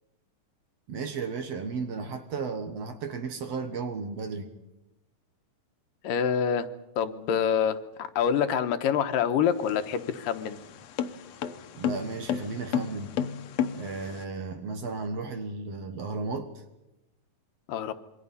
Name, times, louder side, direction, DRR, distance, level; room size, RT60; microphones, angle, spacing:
voice 1, 0.9-4.5 11.7-13.1 13.8-16.5, right 4 dB, 55° right, 2.2 m, -34 dB
voice 2, 6.0-6.7 7.0-10.6 17.7-17.9, left 8 dB, 85° left, 2.6 m, -26 dB
metal cover, 9.5-14.2, left 8 dB, 65° left, 1.8 m, -32 dB
27.0 x 23.5 x 5.5 m
omnidirectional pair, 3.9 m